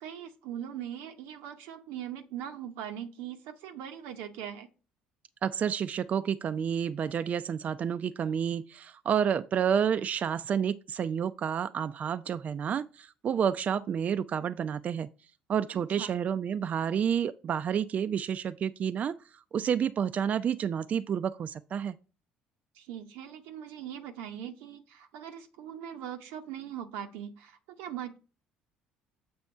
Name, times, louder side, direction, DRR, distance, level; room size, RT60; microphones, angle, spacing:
voice 1, 0.0-4.7 15.7-16.1 22.7-28.2, right 9 dB, 75° right, 0.7 m, -41 dB
voice 2, 5.4-15.1 15.5-19.1 19.5-22.0, right 8 dB, 45° right, 0.4 m, -29 dB
7.1 x 3.4 x 5.4 m
hypercardioid pair, 65°, 4 cm